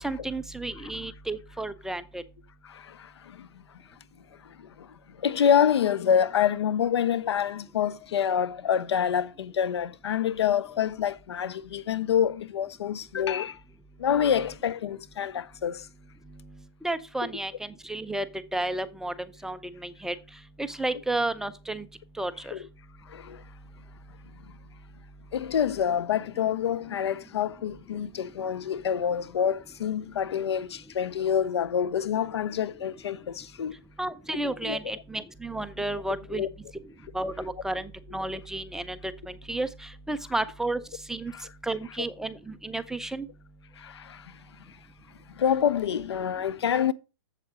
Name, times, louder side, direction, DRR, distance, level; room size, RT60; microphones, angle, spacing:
voice 1, 0.0-2.2 16.8-18.3 18.5-20.2 20.6-21.8 22.2-22.5 34.0-36.5 37.1-39.0 39.3-40.8 41.1-41.3 41.6-43.3, right 2 dB, 5° right, 0.5 m, -32 dB
voice 2, 2.6-3.5 4.6-13.6 14.0-15.9 22.5-22.7 23.1-23.4 25.3-33.7 34.4-34.8 36.3-36.5 41.3-41.5 43.8-44.4 45.3-46.9, left 8 dB, 80° left, 0.7 m, -27 dB
7.7 x 7.4 x 4.9 m
hypercardioid pair, 135°, 14 cm